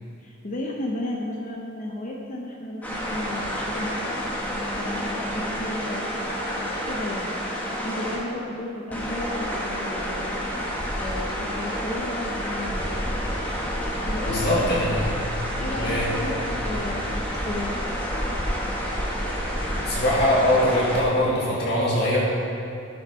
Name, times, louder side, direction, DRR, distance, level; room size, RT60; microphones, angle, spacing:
voice 1, 0.2-4.0 4.5-6.1 6.8-7.4 7.8-10.2 11.0-12.9 13.8-14.8 15.6-17.9, left 1 dB, 40° left, -2 dB, 0.9 m, -33 dB
sound 1, 2.8-8.2 8.9-21.0, equal, 10° left, 1.4 m, -29 dB
voice 2, 14.3-15.1 15.8-16.1 19.9-22.3, left 1 dB, 55° left, -7 dB, 2.0 m, -22 dB
12.0 x 6.0 x 5.5 m, 2.5 s
head